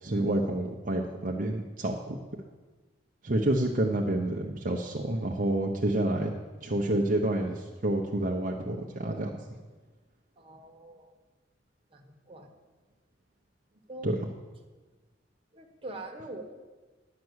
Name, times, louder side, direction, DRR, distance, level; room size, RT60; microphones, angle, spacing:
voice 1, 0.0-2.2 3.2-6.3 6.6-9.3 14.0-14.2, right 1 dB, 45° right, 0 dB, 0.8 m, -28 dB
voice 2, 10.4-11.1 11.9-12.5 13.9-14.1 15.5-16.4, right 2 dB, 30° right, 2 dB, 1.2 m, -43 dB
10.5 x 6.0 x 8.0 m, 1.3 s
head